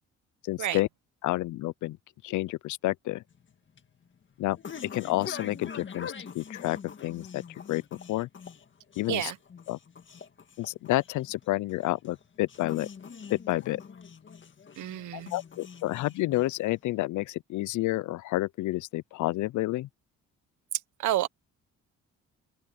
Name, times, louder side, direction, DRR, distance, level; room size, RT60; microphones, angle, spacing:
voice 1, 0.4-0.9 1.2-2.0 2.2-3.2 4.4-7.4 7.7-7.8 8.1-8.3 9.0-9.3 9.7-9.8 10.6-12.9 13.3-13.8 15.1-19.9, left 17 dB, 75° left, 0.5 m, -30 dB
sound 1, 3.3-16.9, left 6 dB, 40° left, 1.9 m, -45 dB
voice 2, 14.8-15.3 21.0-21.3, right 13 dB, 75° right, 1.3 m, -29 dB
open air
cardioid pair, 90°, 30 cm